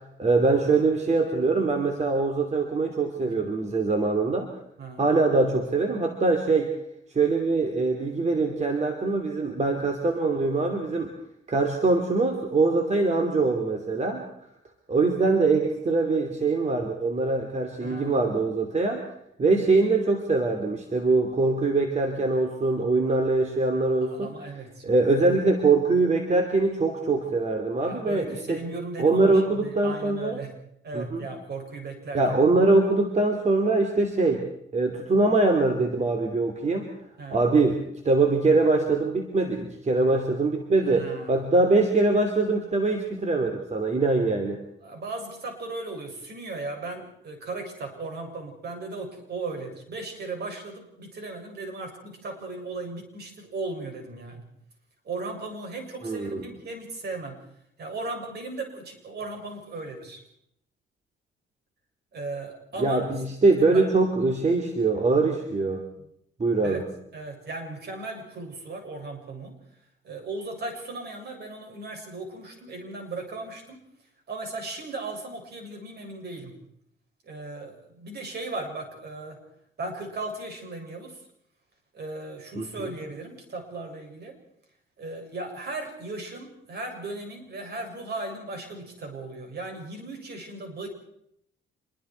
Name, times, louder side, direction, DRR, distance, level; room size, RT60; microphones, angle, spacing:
voice 1, 0.0-4.5 5.0-6.7 7.1-11.1 11.5-14.2 14.9-19.0 19.4-24.3 24.8-28.6 29.0-30.4 30.9-31.2 32.1-34.4 34.7-36.9 37.3-44.6 56.0-56.4 62.8-65.8 66.4-66.8 82.6-82.9, right 3 dB, 35° right, 4 dB, 3.0 m, -23 dB
voice 2, 17.8-18.2 24.1-25.0 27.8-30.5 30.8-32.2 37.2-37.4 40.8-41.5 44.8-54.4 55.0-57.4 57.8-60.2 62.1-63.1 63.7-63.9 66.0-66.1 66.6-66.9 67.1-69.6 70.0-73.8 74.3-76.6 77.2-79.4 79.8-81.2 81.9-84.4 85.0-90.9, right 3 dB, 55° right, 3 dB, 6.8 m, -37 dB
27.0 x 22.0 x 4.6 m, 0.73 s
cardioid pair, 90°, 20 cm